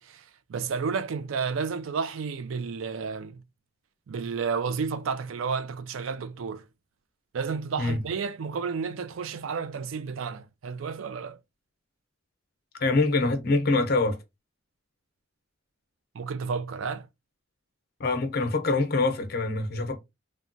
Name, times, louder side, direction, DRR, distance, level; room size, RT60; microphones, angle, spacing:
voice 1, 0.0-3.4 4.1-6.6 7.3-11.4 16.1-17.1, right 5 dB, 90° right, 0.4 m, -31 dB
voice 2, 12.8-14.2 18.0-20.0, left 3 dB, 50° left, 0.6 m, -25 dB
3.2 x 2.1 x 2.6 m
head